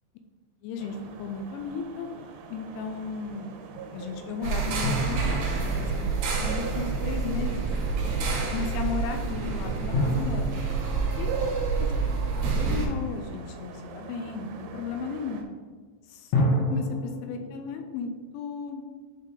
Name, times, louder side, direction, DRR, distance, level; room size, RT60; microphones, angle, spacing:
voice 1, 0.6-2.1 2.5-3.6 3.8-7.7 8.5-10.6 11.2-11.3 11.8-11.9 12.4-15.4 16.1-18.8, left 5 dB, 85° left, 5 dB, 2.7 m, -35 dB
sound 1, 0.8-15.4, right 5 dB, 85° right, 3.1 m, -41 dB
sound 2, 4.4-12.9, right 4 dB, 70° right, 3.0 m, -28 dB
sound 3, 4.8-7.1 9.9-12.9 16.3-18.2, left 1 dB, 65° left, 3.3 m, -31 dB
10.5 x 3.8 x 3.7 m, 1.4 s
omnidirectional pair, 5.7 m